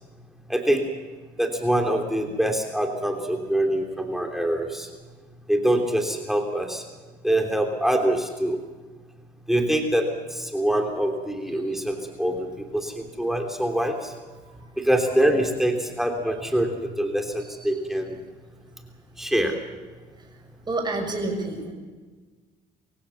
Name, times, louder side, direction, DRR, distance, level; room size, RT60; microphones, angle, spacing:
voice 1, 0.5-0.8 1.4-4.9 5.5-6.8 7.2-8.6 9.5-12.5 12.7-14.1 14.8-18.2 19.2-19.6, right 1 dB, ahead, 2 dB, 3.1 m, -24 dB
voice 2, 20.7-21.7, right 2 dB, 25° right, 2 dB, 6.6 m, -28 dB
25.0 x 16.0 x 7.2 m, 1.3 s
cardioid pair, 110°, 17 cm